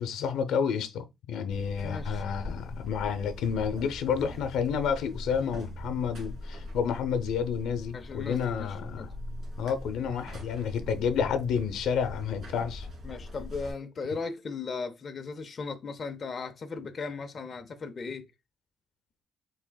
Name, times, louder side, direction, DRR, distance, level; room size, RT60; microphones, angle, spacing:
voice 1, 0.0-9.1 9.6-12.9, left 7 dB, 80° left, 0.6 m, -30 dB
Buzz, 1.5-13.7, left 1 dB, 45° right, 1.7 m, -41 dB
voice 2, 1.8-2.2 7.9-9.1 13.0-18.2, left 4 dB, 30° left, 0.4 m, -37 dB
4.9 x 3.3 x 2.2 m
cardioid pair, 160°, 0 cm